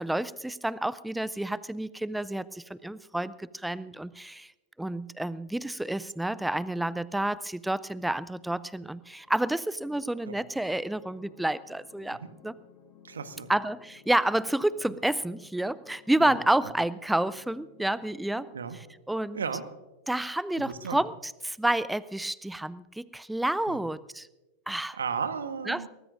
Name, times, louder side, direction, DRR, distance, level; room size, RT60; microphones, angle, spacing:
voice 1, 0.0-4.5 4.8-12.5 13.5-18.5 19.1-19.4 20.1-24.3 24.7-25.0 25.7-25.9, right 1 dB, 5° right, 19 dB, 0.4 m, -29 dB
sound 1, 9.1-18.7, left 6 dB, 40° left, 6.8 m, -57 dB
voice 2, 13.0-13.5 16.2-16.4 18.5-18.8 19.3-19.6 20.6-21.0 23.7-23.8 24.9-25.9, right 6 dB, 70° right, 11 dB, 1.2 m, -34 dB
22.5 x 19.0 x 2.6 m, 1.1 s
figure-of-eight pair, 90°, 0 cm